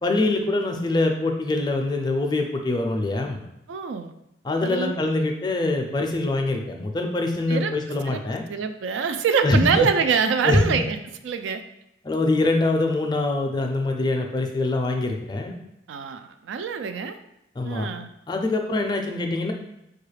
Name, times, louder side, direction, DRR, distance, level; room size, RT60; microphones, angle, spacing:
voice 1, 0.0-3.4 4.4-8.4 9.4-9.9 10.4-10.8 12.0-15.6 17.6-17.9 18.3-19.5, left 2 dB, 25° left, 3 dB, 0.4 m, -24 dB
voice 2, 3.7-4.1 4.6-4.9 7.5-7.7 8.1-8.2 8.5-11.0 11.2-11.6 15.9-17.2 17.6-18.1, right 6 dB, 90° right, 8 dB, 0.3 m, -25 dB
4.6 x 2.3 x 3.2 m, 0.81 s
head